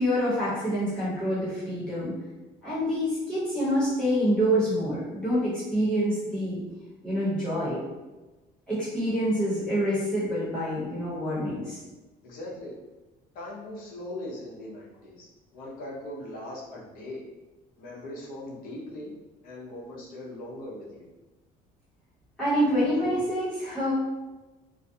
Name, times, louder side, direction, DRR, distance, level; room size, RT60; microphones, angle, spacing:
voice 1, 0.0-2.1 2.6-6.6 7.0-7.8 8.7-11.8 22.4-23.9, equal, 5° left, -12 dB, 1.0 m, -26 dB
voice 2, 12.2-12.7 13.3-17.2 17.8-19.1 19.4-21.1, left 1 dB, 65° left, -4 dB, 0.6 m, -40 dB
2.4 x 2.2 x 2.6 m, 1.1 s
cardioid pair, 170°, 16 cm